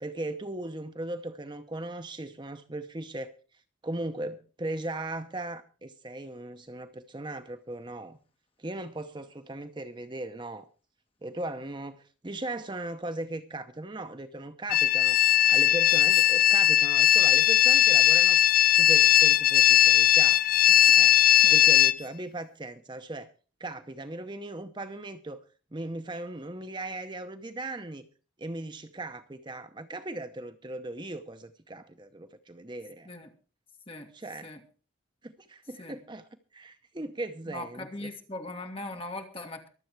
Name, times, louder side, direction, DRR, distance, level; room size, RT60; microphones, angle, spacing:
voice 1, 0.0-3.3 3.8-8.2 8.6-10.7 11.2-15.2 15.5-18.4 18.7-20.4 21.0-21.1 21.5-23.3 23.6-25.4 25.7-28.0 28.4-33.1 34.1-34.5 35.2-38.1, right 2 dB, 25° right, 9 dB, 0.7 m, -38 dB
sound 1, 14.7-21.9, left 12 dB, 45° left, 0.6 m, -19 dB
voice 2, 37.5-39.7, left 2 dB, 30° left, 4 dB, 2.2 m, -40 dB
23.5 x 7.8 x 4.6 m, 0.38 s
head